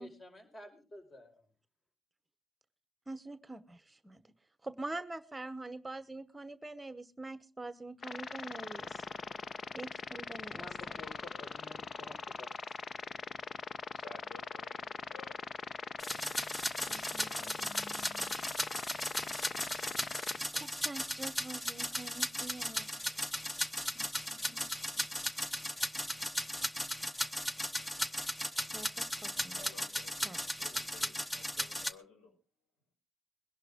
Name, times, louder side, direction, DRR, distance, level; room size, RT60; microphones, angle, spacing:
voice 1, 0.0-1.3 10.5-12.5, left 2 dB, 30° left, 5 dB, 4.8 m, -51 dB
voice 2, 3.1-4.3 4.6-9.1 9.7-11.0 16.9-18.3 20.5-23.2 23.9-25.0 28.7-29.6 30.2-30.4, right 2 dB, 15° right, 13 dB, 0.9 m, -45 dB
sound 1, 8.0-20.4, left 5 dB, 45° left, 0.9 m, -41 dB
voice 3, 13.9-17.5 29.5-32.3, left 3 dB, 80° left, 3 dB, 6.3 m, -56 dB
sound 2, 16.0-31.9, equal, 10° left, 0.9 m, -37 dB
21.5 x 11.5 x 3.6 m, 0.32 s
cardioid pair, 90°, 0 cm